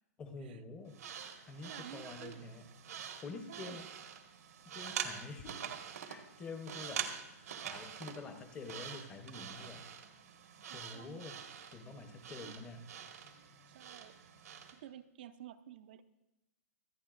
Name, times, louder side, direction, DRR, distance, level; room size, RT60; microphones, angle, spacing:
voice 1, 0.2-1.0 1.5-2.7 3.2-3.9 4.6-5.6 6.1-7.1 7.6-9.9 10.6-11.4 11.7-12.9, left 3 dB, 10° left, 6 dB, 0.8 m, -47 dB
sound 1, 0.9-14.8, right 8 dB, 85° right, 1.5 m, -46 dB
voice 2, 1.6-2.5 3.5-3.9 10.7-11.3 12.4-12.5 13.7-14.2 14.7-16.0, right 11 dB, 35° right, 12 dB, 0.5 m, -52 dB
26.0 x 9.6 x 2.5 m, 0.95 s
hypercardioid pair, 180°, 8 cm